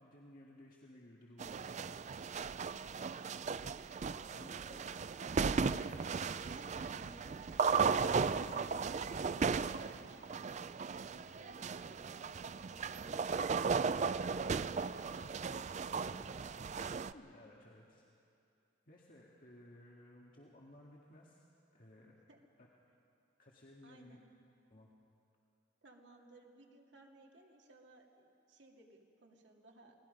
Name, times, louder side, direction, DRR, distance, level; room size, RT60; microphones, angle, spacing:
voice 1, 0.0-2.3 4.3-4.9 17.1-18.0 18.9-21.4 21.7-22.2 22.6-22.7 23.4-24.2 24.7-24.9, left 1 dB, 50° left, -3 dB, 2.0 m, -58 dB
sound 1, 1.4-17.1, right 5 dB, 40° right, 0.4 m, -36 dB
voice 2, 4.8-16.6 22.3-22.4 23.8-24.2 25.8-29.9, right 2 dB, 70° right, 0 dB, 2.4 m, -60 dB
28.5 x 19.0 x 5.4 m, 2.6 s
head